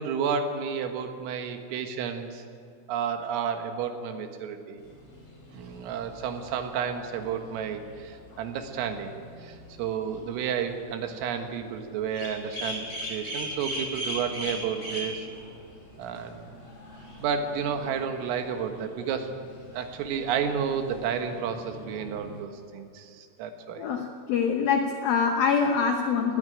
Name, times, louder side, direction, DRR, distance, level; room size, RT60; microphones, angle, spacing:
voice 1, 0.0-2.4 2.9-4.8 5.5-15.3 16.0-16.5 17.2-19.3 19.7-23.8, right 7 dB, 80° right, 6 dB, 4.1 m, -31 dB
sound 1, 4.8-22.4, equal, 30° left, 5.2 m, -41 dB
voice 2, 23.8-26.4, left 6 dB, 85° left, 4 dB, 2.0 m, -25 dB
20.5 x 14.5 x 10.0 m, 2.4 s
omnidirectional pair, 5.9 m